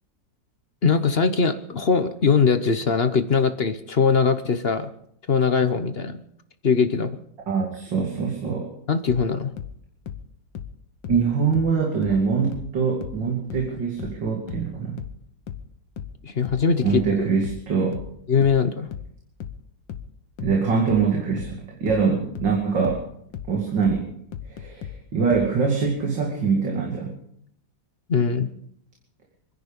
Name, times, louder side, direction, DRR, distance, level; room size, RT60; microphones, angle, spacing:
voice 1, 0.8-4.9 5.3-6.2 6.6-7.2 8.9-9.5 16.2-17.2 18.3-18.9 28.1-28.5, left 5 dB, 45° left, 10 dB, 0.9 m, -21 dB
voice 2, 7.5-8.7 11.1-15.0 16.8-18.0 20.4-23.0 23.5-24.1 24.5-27.2, right 5 dB, 80° right, 0 dB, 3.1 m, -23 dB
sound 1, 9.1-12.3 12.5-25.6, left 8 dB, 90° left, 1.8 m, -37 dB
26.0 x 10.5 x 5.3 m, 0.71 s
omnidirectional pair, 2.0 m